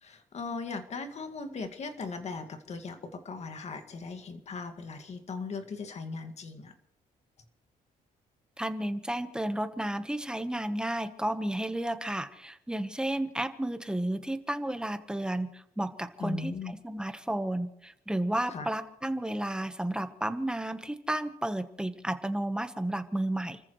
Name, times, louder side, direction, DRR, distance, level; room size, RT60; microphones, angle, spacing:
voice 1, 0.0-6.7 16.2-16.8 18.5-18.7, left 4 dB, 45° left, 6 dB, 2.1 m, -38 dB
voice 2, 8.6-23.6, right 1 dB, 5° right, 9 dB, 1.2 m, -32 dB
29.5 x 14.5 x 3.2 m, 0.75 s
cardioid pair, 115°, 15 cm